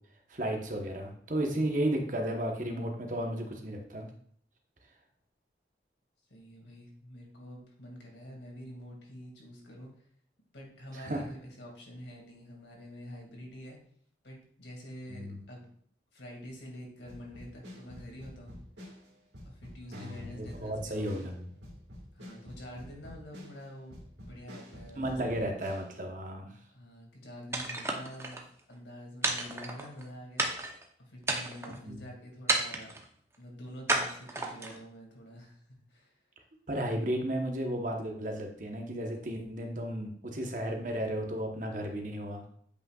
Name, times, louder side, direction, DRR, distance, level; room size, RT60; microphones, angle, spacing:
voice 1, 0.3-4.1 11.0-11.2 15.1-15.4 19.9-21.5 25.0-26.6 31.8-32.0 36.7-42.4, right 1 dB, 45° right, 3 dB, 1.0 m, -34 dB
voice 2, 6.3-10.1 10.5-13.8 14.2-15.7 16.1-18.5 19.5-21.3 22.1-25.6 26.7-30.5 31.0-33.0 33.4-35.6 35.9-36.2, equal, 85° left, -1 dB, 2.2 m, -47 dB
sound 1, 17.1-25.9, equal, 80° right, 2.0 m, -48 dB
sound 2, 27.5-28.4 29.2-30.0 30.4-30.8 31.2-31.8 32.5-33.0 33.9-34.8, right 2 dB, 15° right, 0.7 m, -31 dB
8.3 x 5.5 x 2.4 m, 0.62 s
head